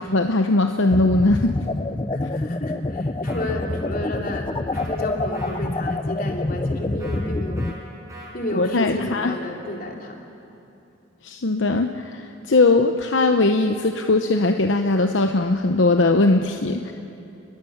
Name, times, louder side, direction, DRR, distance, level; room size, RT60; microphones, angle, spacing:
voice 1, 0.0-1.5 8.5-9.3 11.2-16.9, left 2 dB, 75° left, 6 dB, 0.9 m, -20 dB
sound 1, 0.9-7.7, left 2 dB, 25° left, 0.5 m, -27 dB
voice 2, 2.1-7.7 8.3-10.2, left 1 dB, 50° left, 1 dB, 3.3 m, -31 dB
sound 2, 3.2-3.5 4.7-4.9 5.3-5.6 7.0-7.2 7.6-7.7 8.1-8.3, right 1 dB, 15° right, 5.8 m, -41 dB
29.5 x 21.5 x 7.3 m, 2.8 s
head